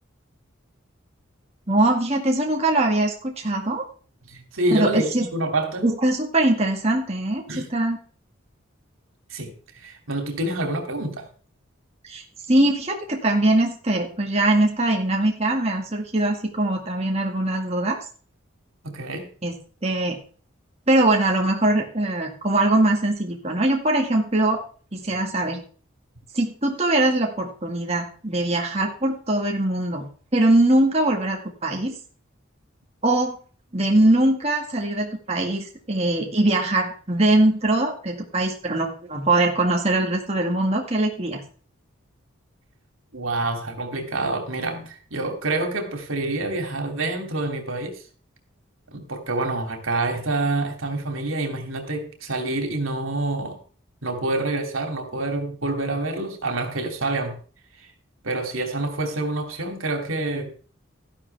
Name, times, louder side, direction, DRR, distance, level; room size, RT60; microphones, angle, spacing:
voice 1, 1.7-3.8 4.7-5.3 5.8-8.0 12.0-18.0 19.4-19.6 19.8-20.2 20.9-24.6 24.9-25.6 26.3-30.1 30.3-31.9 33.0-33.4 33.7-41.4, right 1 dB, 30° right, 2.0 m, -22 dB
voice 2, 4.3-5.9 7.5-7.7 9.3-11.3 18.8-19.3 43.1-48.0 48.9-53.6 54.0-57.4 58.2-60.5, right 2 dB, 85° right, 2.8 m, -27 dB
13.5 x 11.5 x 3.5 m
head